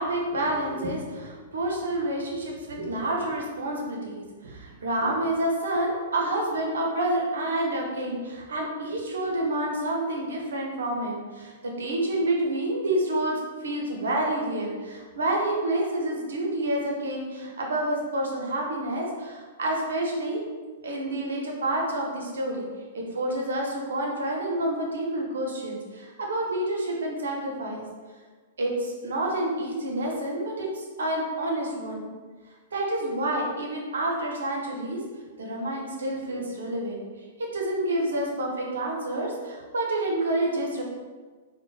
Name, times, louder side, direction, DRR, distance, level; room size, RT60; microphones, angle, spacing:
voice 1, 0.0-13.3 13.6-20.4 20.8-22.6 22.9-27.8 28.6-32.1 32.7-35.0 35.4-37.0 37.5-40.8, right 1 dB, 65° right, -1 dB, 0.6 m, -28 dB
3.7 x 2.1 x 2.3 m, 1.4 s
figure-of-eight pair, 105°, 0 cm